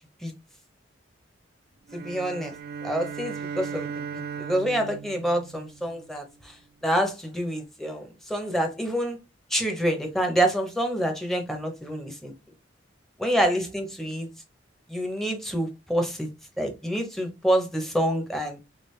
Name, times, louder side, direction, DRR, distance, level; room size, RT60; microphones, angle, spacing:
voice 1, 1.9-2.5 2.8-6.6 6.8-9.2 9.5-12.3 13.2-14.3 14.9-16.3 16.6-18.6, right 1 dB, ahead, 0.7 m, -27 dB
sound 1, 1.9-6.3, right 6 dB, 55° right, 0.3 m, -37 dB
3.2 x 2.5 x 3.1 m
head